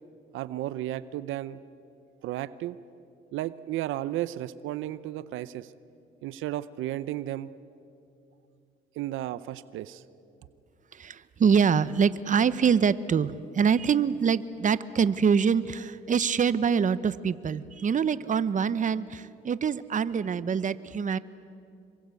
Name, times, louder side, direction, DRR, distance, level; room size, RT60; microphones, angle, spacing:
voice 1, 0.3-1.6 2.2-2.8 3.3-5.7 6.2-7.5 9.0-10.0, right 14 dB, 85° right, 16 dB, 0.7 m, -33 dB
voice 2, 10.9-21.2, right 6 dB, 40° right, 16 dB, 0.8 m, -25 dB
26.5 x 23.5 x 8.3 m, 2.6 s
cardioid pair, 90°, 20 cm